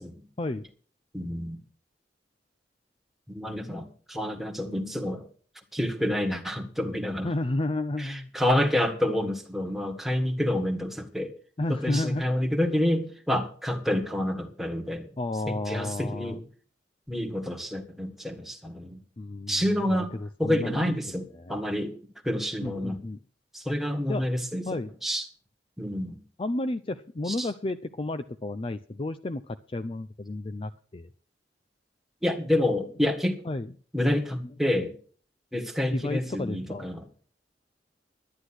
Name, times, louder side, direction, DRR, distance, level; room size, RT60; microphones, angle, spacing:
voice 1, 1.1-1.6 3.3-5.3 5.7-7.3 8.0-11.3 11.7-15.1 15.5-16.4 17.1-19.0 19.5-20.1 20.4-22.0 22.2-23.0 23.5-25.2 25.8-26.2 27.3-27.5 32.2-33.4 33.9-35.0 35.5-37.0, left 1 dB, ahead, 4 dB, 1.7 m, -28 dB
voice 2, 7.2-8.3 11.6-12.4 15.2-16.4 19.2-21.5 22.6-23.2 24.1-24.2 24.7-24.9 26.4-31.1 33.4-33.7 34.4-34.5 35.9-36.9, left 2 dB, 30° left, 11 dB, 0.5 m, -32 dB
11.5 x 10.0 x 6.2 m, 0.43 s
head